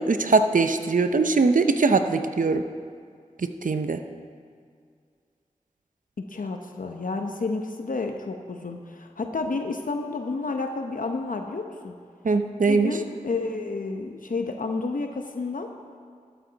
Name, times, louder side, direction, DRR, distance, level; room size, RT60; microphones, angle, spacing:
voice 1, 0.0-2.6 3.4-4.0 12.2-13.0, right 4 dB, 75° right, 8 dB, 0.7 m, -21 dB
voice 2, 6.2-11.9 12.7-15.7, left 3 dB, 85° left, 4 dB, 0.8 m, -30 dB
13.0 x 12.5 x 4.0 m, 2.2 s
wide cardioid pair, 45°, 14 cm